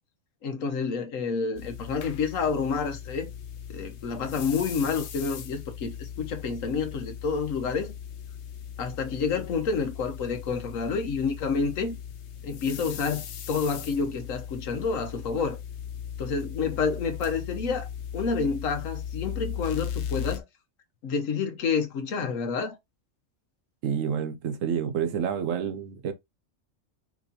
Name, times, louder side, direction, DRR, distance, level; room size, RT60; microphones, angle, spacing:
voice 1, 0.4-3.3 3.7-7.9 8.8-12.0 12.4-15.6 16.2-17.9 18.1-20.4 21.0-22.7, left 5 dB, 90° left, 1.3 m, -29 dB
sound 1, 1.6-20.4, left 8 dB, 65° left, 0.9 m, -38 dB
voice 2, 23.8-26.1, right 8 dB, 80° right, 1.2 m, -28 dB
6.2 x 3.0 x 2.8 m
omnidirectional pair, 1.3 m